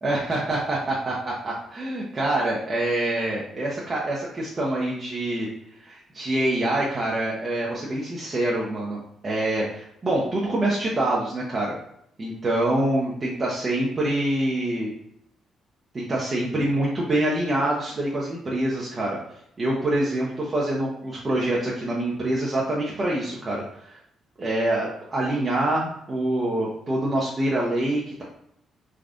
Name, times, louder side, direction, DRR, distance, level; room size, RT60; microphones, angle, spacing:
voice 1, 0.0-5.5 5.8-11.7 12.2-14.9 15.9-19.2 19.6-24.0 24.4-28.2, right 1 dB, 35° right, -4 dB, 0.6 m, -25 dB
3.4 x 2.4 x 2.5 m, 0.74 s
cardioid pair, 90°, 0 cm